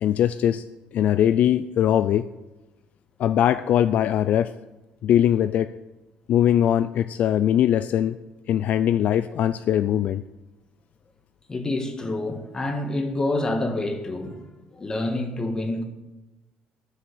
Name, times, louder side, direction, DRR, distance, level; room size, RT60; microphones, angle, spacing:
voice 1, 0.0-0.6 0.9-2.3 3.2-4.5 5.0-5.7 6.3-8.2 8.5-10.2, left 10 dB, 60° left, 0.4 m, -21 dB
voice 2, 11.5-14.4 14.7-15.8, left 2 dB, 20° left, 1.7 m, -27 dB
13.0 x 6.1 x 7.8 m
cardioid pair, 135°, 3 cm